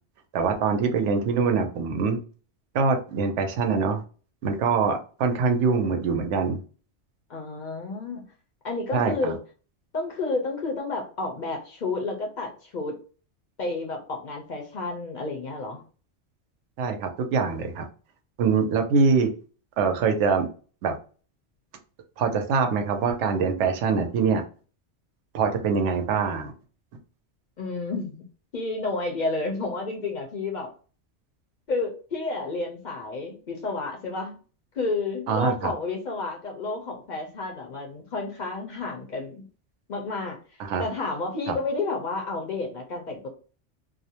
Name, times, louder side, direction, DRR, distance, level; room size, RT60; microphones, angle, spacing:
voice 1, 0.3-2.2 2.7-4.0 4.4-6.6 8.9-9.3 16.8-17.9 18.4-19.3 19.8-20.5 20.8-20.9 22.2-24.4 25.3-26.5 35.3-35.7 40.6-40.8, right 5 dB, 85° right, 5 dB, 0.9 m, -24 dB
voice 2, 7.3-8.2 8.6-9.4 9.9-12.9 13.6-15.8 27.6-28.2 28.5-30.7 31.7-34.4 34.7-39.5 39.9-40.4 40.8-43.3, left 3 dB, 50° left, 1 dB, 0.6 m, -30 dB
2.5 x 2.1 x 2.7 m, 0.37 s
omnidirectional pair, 1.2 m